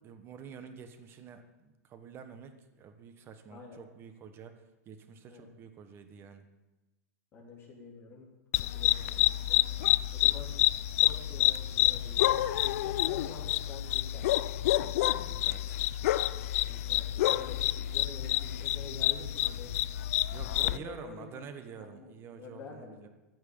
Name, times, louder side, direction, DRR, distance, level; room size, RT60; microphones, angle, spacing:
voice 1, 0.0-6.5 15.1-15.8 20.3-23.1, right 6 dB, 25° right, 8 dB, 1.3 m, -48 dB
voice 2, 7.3-8.3 8.7-9.6 10.1-10.5 10.9-14.4 16.7-19.7 20.5-21.4 21.8-23.1, left 4 dB, 25° left, -2 dB, 3.6 m, -48 dB
sound 1, 8.5-20.8, left 14 dB, 60° left, 0.4 m, -28 dB
14.5 x 6.3 x 8.8 m, 1.1 s
supercardioid pair, 145°, 9 cm